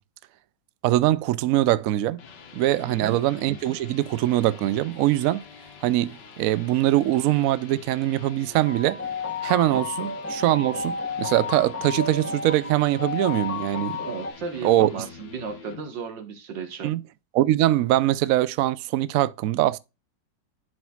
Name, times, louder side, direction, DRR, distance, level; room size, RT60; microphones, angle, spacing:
voice 1, 0.8-2.2 2.5-5.4 5.8-9.0 9.4-14.1 14.6-15.0 16.8-17.0 17.3-19.8, right 14 dB, 75° right, 0.8 m, -22 dB
sound 1, 2.0-15.8, left 6 dB, 70° left, 1.8 m, -46 dB
voice 2, 2.8-3.2 9.7-9.9 14.1-16.9, right 4 dB, 90° right, 2.1 m, -35 dB
sound 2, 8.7-14.3, left 5 dB, 15° left, 0.5 m, -32 dB
11.0 x 5.0 x 2.4 m
omnidirectional pair, 1.9 m